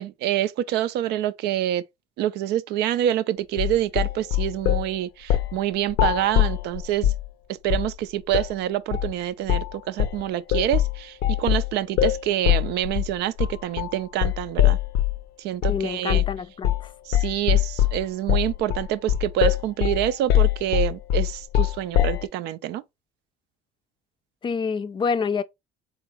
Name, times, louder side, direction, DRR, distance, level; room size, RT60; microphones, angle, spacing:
voice 1, 0.0-1.8 2.2-7.1 7.5-14.8 15.4-16.2 17.1-22.8, right 12 dB, 80° right, 0.4 m, -26 dB
sound 1, 3.6-4.9 5.3-5.6 5.9-7.3 7.7-8.0 8.3-8.5 8.9-9.2 9.5-9.7 10.0-15.2 15.6-15.8 16.1-16.4 16.6-16.9 17.1-22.3, left 12 dB, 85° left, 0.6 m, -22 dB
voice 2, 15.7-16.9 24.4-25.4, left 5 dB, 30° left, 0.4 m, -27 dB
3.9 x 3.6 x 3.0 m
cardioid pair, 110°, 17 cm